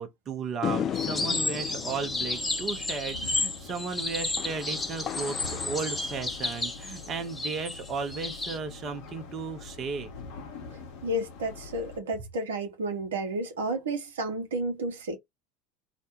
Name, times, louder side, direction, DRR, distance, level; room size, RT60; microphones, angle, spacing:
voice 1, 0.0-10.1, right 5 dB, 40° right, 0.7 m, -35 dB
sound 1, 0.6-7.1, left 9 dB, 40° left, 0.3 m, -37 dB
sound 2, 0.9-12.0, left 4 dB, 60° left, 0.9 m, -45 dB
sound 3, 0.9-8.6, left 2 dB, 15° left, 0.9 m, -32 dB
voice 2, 11.0-15.2, right 1 dB, 80° right, 0.8 m, -31 dB
2.5 x 2.1 x 2.8 m
hypercardioid pair, 75°, 0 cm